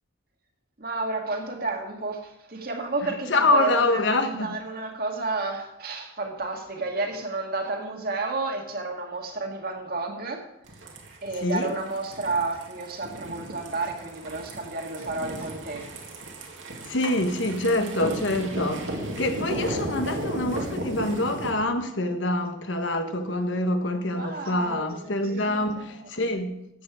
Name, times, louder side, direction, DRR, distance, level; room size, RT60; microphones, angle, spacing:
voice 1, 0.8-10.4 11.2-15.9 24.1-26.0, right 3 dB, 50° right, 1.9 m, -31 dB
voice 2, 3.3-4.5 11.3-11.7 16.9-26.5, left 2 dB, 70° left, 1.3 m, -26 dB
sound 1, 10.6-21.5, right 1 dB, 75° right, 2.1 m, -35 dB
14.5 x 7.8 x 5.0 m
head